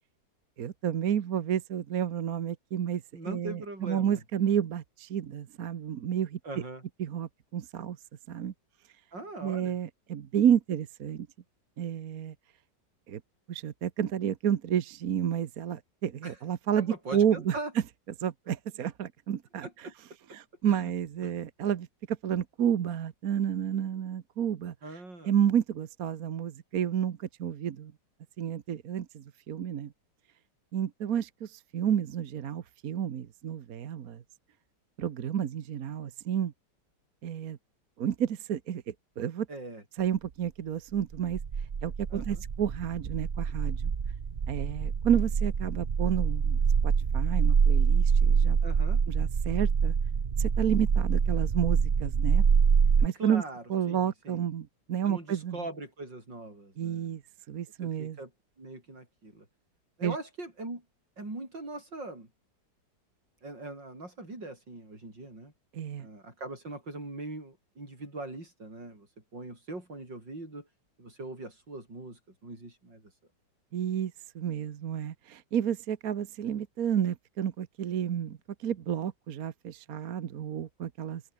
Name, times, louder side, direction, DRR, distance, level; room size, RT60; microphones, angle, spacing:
voice 1, 0.6-6.4 7.0-8.0 8.3-8.5 9.4-11.3 11.8-12.3 13.1-13.2 13.5-17.6 18.2-19.9 20.3-27.9 28.4-29.9 30.7-34.2 35.0-36.5 37.2-37.6 38.0-39.5 40.0-41.4 41.8-43.9 44.5-48.6 49.1-49.9 50.4-52.4 53.0-53.4 53.7-55.6 56.8-57.2 57.5-58.2 60.0-60.2 65.7-66.1 73.7-81.2, right 9 dB, 55° right, 1.4 m, -31 dB
voice 2, 3.1-4.2 6.4-6.8 9.1-9.8 16.2-16.4 16.8-17.7 19.6-19.9 20.6-20.9 24.8-25.3 39.5-39.8 42.1-42.4 48.6-49.0 53.2-54.5 55.1-57.2 57.8-58.3 58.6-59.5 60.0-60.8 61.2-62.3 63.4-65.5 66.0-69.1 69.3-70.7 71.0-73.1, right 2 dB, 70° right, 8.2 m, -41 dB
sound 1, 41.1-53.1, right 6 dB, 35° right, 1.2 m, -25 dB
omnidirectional pair, 2.0 m